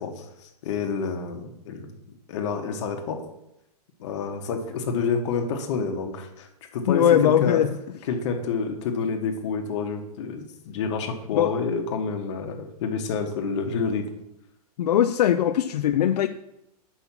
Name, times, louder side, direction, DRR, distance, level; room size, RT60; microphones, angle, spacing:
voice 1, 0.0-1.9 2.3-3.2 4.0-7.6 8.1-14.1, left 5 dB, 45° left, 4 dB, 1.3 m, -28 dB
voice 2, 6.9-7.7 11.3-11.5 14.8-16.3, left 10 dB, 80° left, 9 dB, 0.5 m, -20 dB
7.1 x 5.5 x 6.0 m, 0.83 s
hypercardioid pair, 160°, 20 cm